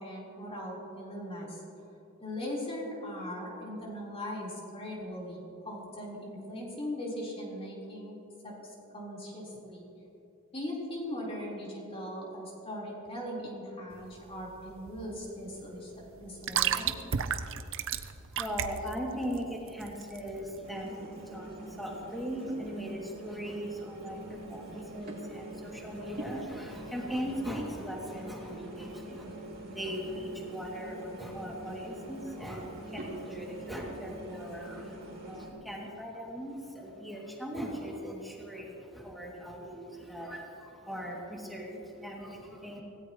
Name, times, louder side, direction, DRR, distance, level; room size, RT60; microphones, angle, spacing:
voice 1, 0.0-1.6 2.2-8.2 8.4-8.5 8.9-9.8 10.5-15.9 16.2-16.9, equal, 25° left, -5 dB, 4.3 m, -39 dB
sound 1, 13.9-20.6, right 8 dB, 60° right, 0.7 m, -34 dB
voice 2, 18.3-42.8, equal, ahead, -3 dB, 2.6 m, -39 dB
sound 2, 20.6-35.5, right 1 dB, 45° right, 2.9 m, -44 dB
25.0 x 17.5 x 3.2 m, 2.8 s
head